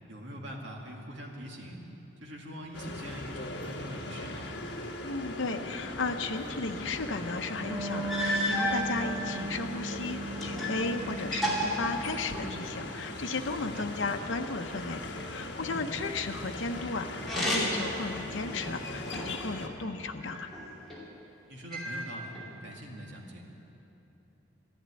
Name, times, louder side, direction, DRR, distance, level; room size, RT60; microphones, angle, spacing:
voice 1, 0.1-1.8 2.2-4.5 13.5-13.9 15.6-15.8 21.5-22.3 22.6-23.4, equal, 65° right, -1 dB, 2.2 m, -43 dB
sound 1, 2.7-19.7, left 2 dB, 60° left, 1.3 m, -40 dB
voice 2, 5.0-15.0 15.3-20.5, left 3 dB, 80° left, 4 dB, 0.8 m, -35 dB
sound 2, 7.5-7.6 8.1-8.8 9.6-10.8 11.1-12.6 17.2-17.9 18.5-19.5 20.2-21.0 21.7-22.5, equal, ahead, 2.7 m, -32 dB
Wind instrument woodwind instrument, 7.5-12.6, right 2 dB, 20° right, 1.6 m, -38 dB
12.5 x 11.5 x 9.6 m, 3.0 s
head